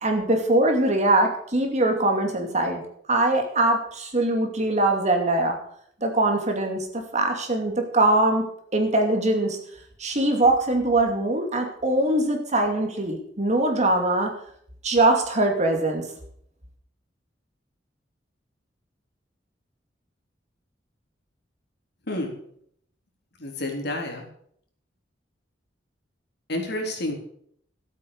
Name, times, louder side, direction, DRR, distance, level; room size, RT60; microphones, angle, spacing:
voice 1, 0.0-2.8 3.1-5.6 6.0-8.4 8.7-9.6 10.0-14.3 14.8-16.0, right 2 dB, 40° right, 3 dB, 2.6 m, -22 dB
voice 2, 23.4-24.3 26.5-27.1, left 1 dB, 65° left, 1 dB, 3.5 m, -29 dB
14.0 x 8.4 x 6.8 m, 0.65 s
head